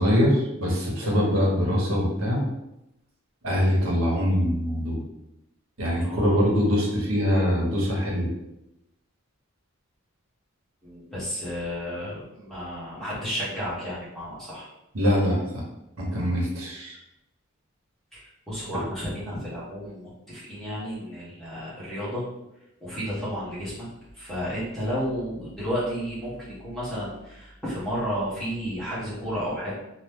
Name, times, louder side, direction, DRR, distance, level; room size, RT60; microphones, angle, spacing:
voice 1, 0.0-2.4 3.4-5.0 5.8-8.3 14.9-15.4 16.0-16.9 18.7-18.8, equal, 70° right, -2 dB, 1.0 m, -23 dB
voice 2, 6.0-6.4 10.8-14.7 18.1-22.2 22.8-23.9 24.1-29.7, equal, ahead, -10 dB, 1.2 m, -32 dB
3.0 x 2.1 x 3.5 m, 0.89 s
head